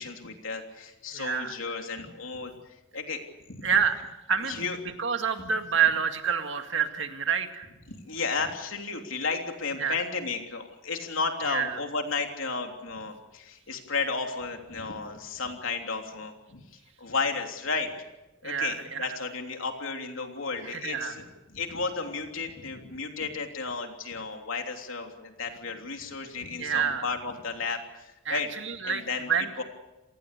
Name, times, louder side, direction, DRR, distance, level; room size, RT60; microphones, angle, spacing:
voice 1, 0.0-2.5 2.9-3.2 3.5-3.7 4.5-4.8 7.9-16.6 17.0-17.9 18.4-21.2 21.5-28.5 28.8-29.3 29.6-29.7, left 4 dB, 80° left, 4 dB, 3.2 m, -33 dB
voice 2, 1.1-1.7 3.6-4.0 4.3-4.6 5.0-7.7 9.8-10.0 11.5-11.8 18.4-19.1 20.6-21.2 26.6-27.1 28.3-29.5, right 7 dB, 65° right, 6 dB, 2.1 m, -28 dB
28.0 x 19.0 x 6.8 m, 1.0 s
head